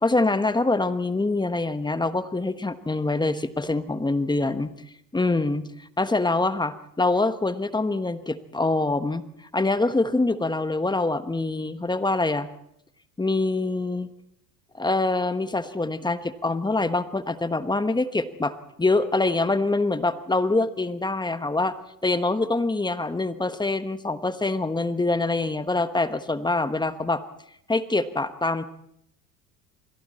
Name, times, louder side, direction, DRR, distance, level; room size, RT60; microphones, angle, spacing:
voice 1, 0.0-4.7 5.1-5.7 6.0-9.2 9.5-12.5 13.2-14.1 14.7-18.5 18.8-21.7 22.0-27.2 27.7-28.6, left 2 dB, 10° left, 11 dB, 1.2 m, -25 dB
28.5 x 21.5 x 4.3 m, 0.76 s
supercardioid pair, 95°, 46 cm